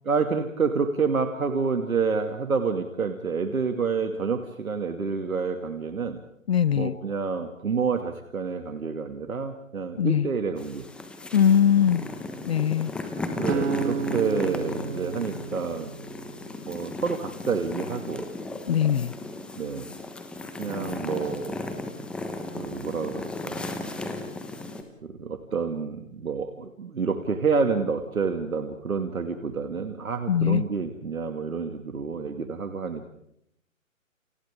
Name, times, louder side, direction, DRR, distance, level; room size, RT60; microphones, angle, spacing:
voice 1, 0.0-6.2 6.7-10.9 13.4-15.9 16.7-18.3 19.6-19.9 20.6-21.6 22.5-23.7 25.0-33.1, right 5 dB, 85° right, 6 dB, 2.5 m, -28 dB
voice 2, 6.5-6.9 10.0-10.3 11.3-12.0 12.5-12.9 18.7-19.1 30.3-30.6, left 9 dB, 50° left, 19 dB, 0.8 m, -21 dB
sound 1, 10.6-24.8, left 2 dB, ahead, 1.1 m, -36 dB
sound 2, 13.5-16.6, right 5 dB, 55° right, 1.6 m, -32 dB
30.0 x 30.0 x 3.7 m, 0.72 s
hypercardioid pair, 150°, 41 cm